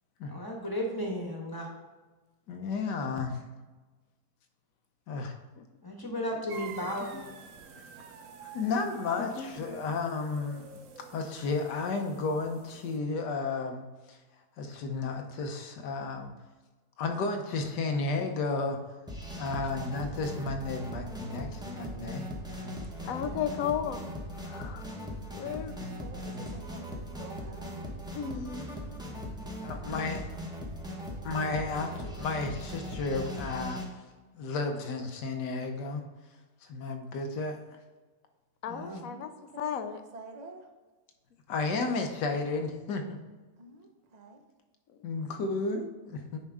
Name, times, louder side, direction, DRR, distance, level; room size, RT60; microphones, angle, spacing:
voice 1, 0.3-1.7 5.8-7.2 23.0-23.4 38.7-39.1, equal, 15° left, 0 dB, 1.1 m, -35 dB
voice 2, 2.5-3.4 5.1-5.3 8.5-10.7 11.1-14.2 14.6-16.3 17.0-18.8 19.4-22.2 29.6-30.2 31.2-33.8 34.3-36.0 36.6-37.6 41.5-43.2 45.0-46.4, left 3 dB, 85° left, 5 dB, 1.5 m, -32 dB
sound 1, 6.5-13.0, right 5 dB, 60° right, 1.0 m, -48 dB
voice 3, 9.2-9.8 23.0-24.0 24.4-24.8 25.3-26.0 28.1-28.7 38.6-39.3 39.6-40.0, left 8 dB, 70° left, 10 dB, 0.9 m, -35 dB
sound 2, 19.1-33.8, equal, 5° right, 0.8 m, -39 dB
voice 4, 23.3-24.1 25.6-28.0 39.1-40.7 43.6-44.4, right 2 dB, 45° right, 4 dB, 0.5 m, -49 dB
9.7 x 4.8 x 3.6 m, 1.3 s
omnidirectional pair, 1.8 m